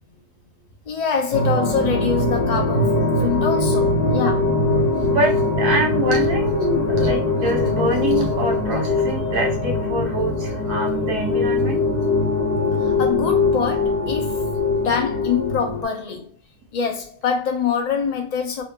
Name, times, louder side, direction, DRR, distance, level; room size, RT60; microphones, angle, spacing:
voice 1, 0.9-4.5 12.8-14.5 14.7-16.4 16.7-18.6, left 6 dB, 50° left, 0.4 m, -25 dB
sound 1, 1.3-15.8, left 3 dB, 35° left, 0.9 m, -21 dB
voice 2, 5.1-11.8, right 2 dB, 80° right, 1.5 m, -25 dB
sound 2, 6.8-13.8, right 3 dB, 85° left, 1.4 m, -36 dB
3.5 x 2.5 x 2.9 m
omnidirectional pair, 1.6 m